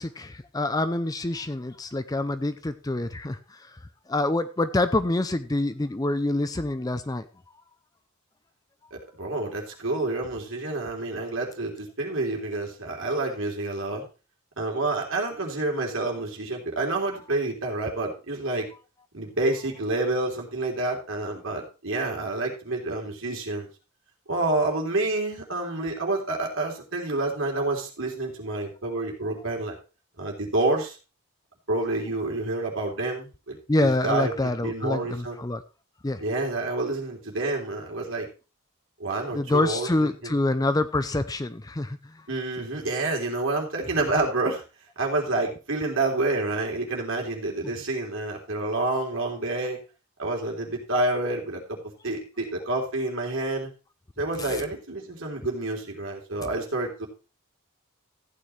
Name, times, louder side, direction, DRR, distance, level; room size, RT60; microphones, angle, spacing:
voice 1, 0.0-3.8 4.1-7.2 33.7-35.6 36.0-36.2 39.3-42.2 54.4-54.6, left 2 dB, 15° left, 12 dB, 0.5 m, -26 dB
voice 2, 8.9-14.1 14.6-18.7 19.1-23.7 24.3-29.8 30.2-31.0 31.7-34.3 34.6-35.4 36.2-38.3 39.0-40.4 42.3-44.6 45.0-49.8 50.2-51.8 52.0-53.7 54.2-57.1, right 2 dB, 60° right, 0 dB, 3.5 m, -28 dB
14.5 x 9.0 x 3.2 m, 0.31 s
head